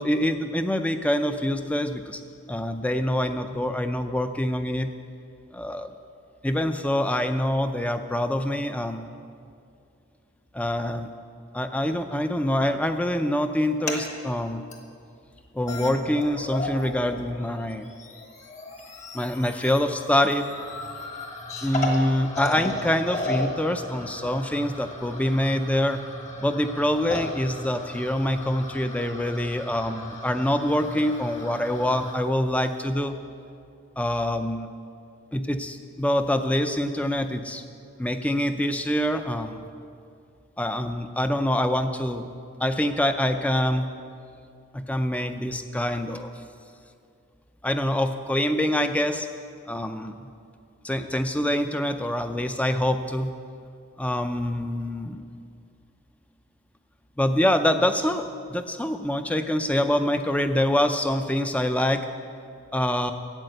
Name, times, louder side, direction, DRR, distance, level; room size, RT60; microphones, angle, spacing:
voice 1, 0.0-2.2 2.5-4.9 5.5-5.9 6.4-9.1 10.5-11.1 11.5-14.6 15.5-17.9 19.1-20.4 21.6-26.0 26.4-33.2 34.0-34.7 35.3-37.6 38.0-39.7 40.6-42.3 42.6-43.9 44.7-46.3 47.6-49.3 49.7-50.3 50.8-53.3 54.0-55.2 57.2-62.1 62.7-63.1, left 1 dB, 5° left, 8 dB, 0.5 m, -25 dB
sound 1, 13.6-14.0 14.7-14.8 15.4-15.5 15.7-16.9 17.2-32.1, left 2 dB, 35° left, 1.4 m, -35 dB
12.0 x 8.5 x 7.9 m, 2.4 s
head